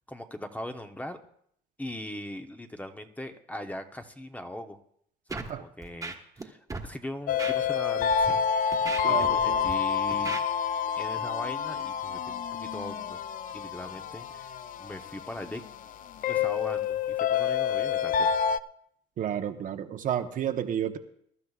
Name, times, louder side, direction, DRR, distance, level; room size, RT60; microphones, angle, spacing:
voice 1, 0.1-1.2 1.8-4.8 5.3-8.4 8.7-8.8 9.1-10.4 10.9-13.2 13.5-15.6 16.3-18.3, left 1 dB, 10° left, 7 dB, 0.8 m, -40 dB
Scratching (performance technique), 5.3-5.5 5.8-6.4 6.7-6.9 7.4-7.5 8.1-8.3 8.7-9.7 10.1-10.4, right 3 dB, 20° right, 1.4 m, -36 dB
sound 1, 7.3-18.6, left 7 dB, 55° left, 0.4 m, -28 dB
voice 2, 9.0-9.7 19.2-21.0, right 9 dB, 50° right, 7 dB, 1.0 m, -31 dB
22.5 x 12.0 x 2.4 m, 0.67 s
cardioid pair, 110°, 17 cm